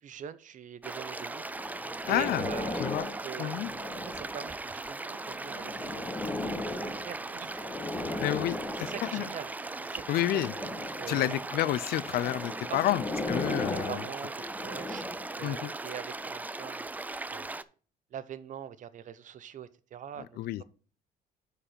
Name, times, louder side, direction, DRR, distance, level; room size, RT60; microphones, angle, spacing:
voice 1, 0.0-1.5 2.1-3.7 4.1-5.0 5.3-7.6 8.8-9.5 9.8-10.4 11.0-11.4 12.7-12.9 13.5-15.0 15.4-16.9 17.3-17.6 18.1-20.4, right 9 dB, 50° right, 0.7 m, -43 dB
sound 1, 0.8-17.6, right 2 dB, 10° right, 0.4 m, -39 dB
sound 2, 1.4-4.5 5.2-9.4 10.1-11.3 12.1-15.4 16.1-16.3, left 2 dB, 15° left, 1.4 m, -37 dB
voice 2, 2.1-2.4 2.8-3.1 3.4-3.7 8.2-9.3 10.1-10.5 11.1-14.0 15.4-15.7 20.4-20.6, left 14 dB, 65° left, 0.4 m, -30 dB
sound 3, 4.6-13.1, right 9 dB, 80° right, 1.1 m, -54 dB
9.9 x 4.9 x 4.4 m
cardioid pair, 110°, 17 cm